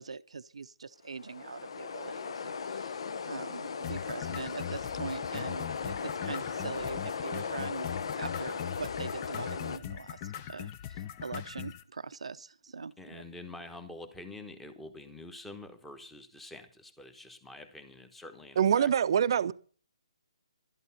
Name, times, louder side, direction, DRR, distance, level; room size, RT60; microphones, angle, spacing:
voice 1, 0.0-7.9 8.1-13.2, right 5 dB, 85° right, 0.7 m, -42 dB
sound 1, 1.1-9.8, left 5 dB, 60° left, 0.9 m, -37 dB
sound 2, 3.8-11.8, left 10 dB, 25° left, 0.6 m, -41 dB
voice 2, 13.0-18.9, left 2 dB, 5° left, 1.1 m, -47 dB
voice 3, 18.6-19.5, right 8 dB, 45° right, 0.7 m, -24 dB
12.0 x 11.0 x 5.7 m
hypercardioid pair, 160°, 3 cm